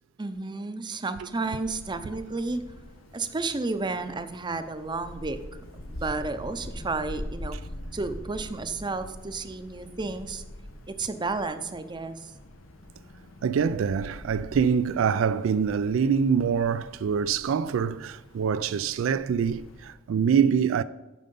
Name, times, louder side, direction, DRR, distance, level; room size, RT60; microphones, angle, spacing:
voice 1, 0.2-2.6 3.1-5.4 5.9-7.6 7.9-10.4 10.9-12.3, right 3 dB, 25° right, 0.6 m, -32 dB
Wind, 1.3-19.9, left 1 dB, 90° left, 1.1 m, -44 dB
voice 2, 13.4-20.8, right 7 dB, 80° right, 0.3 m, -25 dB
9.2 x 6.6 x 5.3 m
head